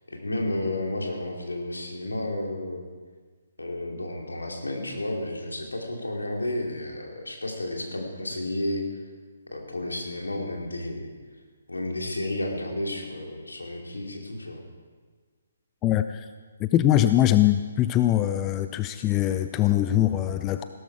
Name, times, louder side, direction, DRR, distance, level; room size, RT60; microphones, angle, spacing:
voice 1, 0.1-2.8 3.6-8.8 9.5-11.1 11.7-14.6, left 1 dB, 75° left, 1 dB, 2.8 m, -32 dB
voice 2, 15.8-16.3 16.6-20.6, left 13 dB, 20° left, 9 dB, 0.4 m, -22 dB
16.5 x 13.0 x 4.7 m, 1.5 s
figure-of-eight pair, 135°, 0 cm